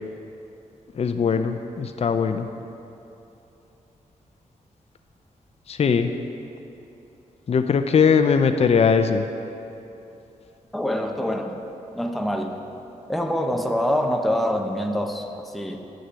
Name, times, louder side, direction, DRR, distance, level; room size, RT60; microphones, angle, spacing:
voice 1, 0.9-2.5 5.7-6.1 7.5-9.3, left 6 dB, 45° left, 7 dB, 0.5 m, -20 dB
voice 2, 10.7-11.5 12.0-12.6 13.1-15.8, equal, ahead, 3 dB, 0.8 m, -25 dB
9.6 x 6.4 x 6.9 m, 2.9 s
cardioid pair, 75°, 14 cm